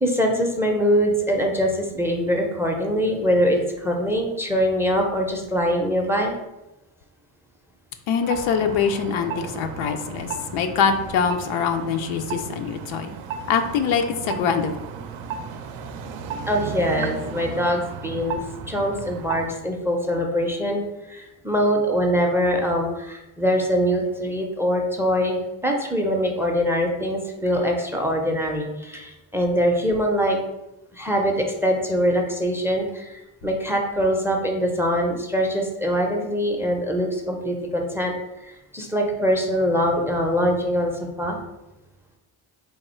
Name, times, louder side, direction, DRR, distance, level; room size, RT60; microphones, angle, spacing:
voice 1, 0.0-6.3 16.5-18.4 18.7-20.8 21.1-30.4 30.9-38.1 38.4-41.4, equal, 5° right, 2 dB, 0.5 m, -23 dB
voice 2, 8.1-13.1 13.5-14.7, left 6 dB, 70° left, 6 dB, 0.6 m, -23 dB
sound 1, 8.2-19.6, right 5 dB, 65° right, 0.5 m, -34 dB
3.5 x 2.3 x 4.2 m, 0.97 s
cardioid pair, 85°, 49 cm